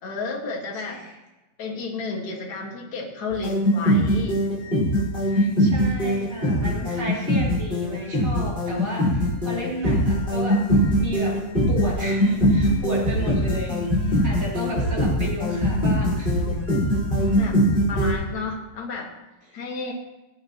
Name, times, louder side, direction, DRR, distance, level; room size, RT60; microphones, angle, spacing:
voice 1, 0.0-1.0 1.6-4.5 17.1-19.1 19.5-19.9, left 3 dB, 55° left, 0 dB, 1.0 m, -32 dB
voice 2, 0.7-1.2 5.3-11.4 11.7-16.4 19.5-19.6, equal, 20° right, -6 dB, 3.9 m, -33 dB
sound 1, 3.3-18.1, equal, 15° left, 4.1 m, -22 dB
21.0 x 8.8 x 2.9 m, 1.1 s
omnidirectional pair, 4.4 m